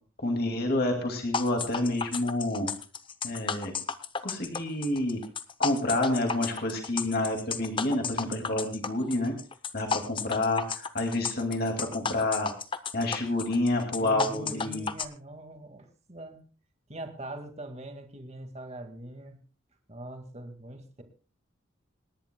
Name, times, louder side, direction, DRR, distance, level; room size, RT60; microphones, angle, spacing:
voice 1, 0.2-2.7 3.2-3.7 4.2-5.2 5.6-9.3 9.7-12.5 12.9-14.9, left 2 dB, 50° left, 3 dB, 2.3 m, -28 dB
sound 1, 1.3-15.0, left 5 dB, 25° left, 0.7 m, -33 dB
voice 2, 14.0-16.4 16.9-19.4 19.9-21.0, right 1 dB, 35° right, 5 dB, 2.0 m, -42 dB
27.0 x 10.5 x 2.3 m, 0.37 s
head